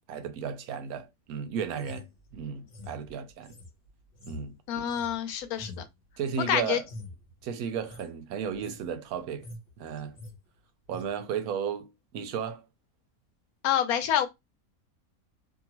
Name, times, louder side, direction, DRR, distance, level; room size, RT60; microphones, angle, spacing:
voice 1, 0.1-3.6 4.3-4.5 6.2-6.9 7.4-9.5 9.8-10.2 10.9-12.6, right 7 dB, 85° right, 1.1 m, -34 dB
sound 1, 1.7-6.5 6.8-7.2 7.7-8.1 8.4-8.8 9.2-9.7 10.0-10.4 10.9-11.1, left 2 dB, 50° left, 1.1 m, -46 dB
voice 2, 4.7-5.8 6.5-6.8 13.6-14.3, left 10 dB, 85° left, 1.1 m, -27 dB
2.7 x 2.6 x 2.9 m
omnidirectional pair, 1.5 m